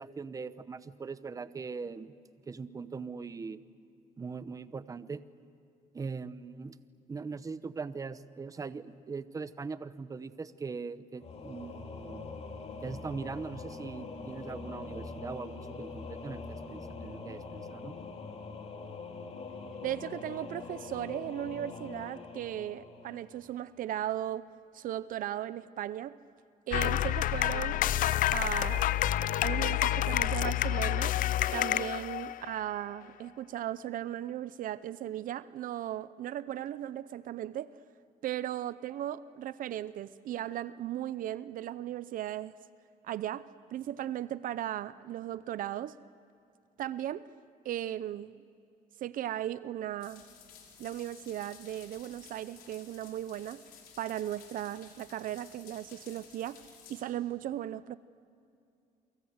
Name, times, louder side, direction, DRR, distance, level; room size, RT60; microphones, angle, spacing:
voice 1, 0.0-2.1 2.5-3.6 4.2-5.2 5.9-6.8 7.1-12.3 12.8-17.9, right 4 dB, 25° right, 14 dB, 0.8 m, -41 dB
Singing / Musical instrument, 11.2-23.8, left 4 dB, 45° left, 3.0 m, -43 dB
voice 2, 19.8-24.5 24.7-26.2 26.7-27.8 28.3-28.9 29.4-31.1 31.5-37.7 38.2-42.5 43.0-45.9 46.8-47.2 47.6-48.4 49.0-50.2 50.8-53.6 54.0-58.0, right 12 dB, 65° right, 16 dB, 0.7 m, -37 dB
sound 1, 26.7-32.6, left 13 dB, 65° left, 0.5 m, -28 dB
sound 2, 50.0-57.0, left 7 dB, 90° left, 5.4 m, -54 dB
29.0 x 24.0 x 8.1 m, 2.5 s
cardioid pair, 130°, 15 cm